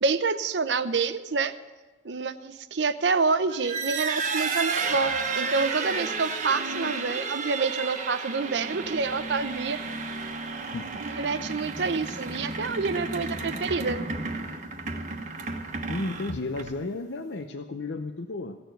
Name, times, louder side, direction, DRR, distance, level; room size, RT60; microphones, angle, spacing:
voice 1, 0.0-1.5 2.0-9.8 11.0-14.0, right 4 dB, 70° right, 12 dB, 0.7 m, -27 dB
sound 1, 3.5-16.9, right 4 dB, 45° right, 1.2 m, -32 dB
voice 2, 15.9-18.6, left 2 dB, 70° left, 7 dB, 0.7 m, -33 dB
16.0 x 7.0 x 9.2 m, 1.2 s
head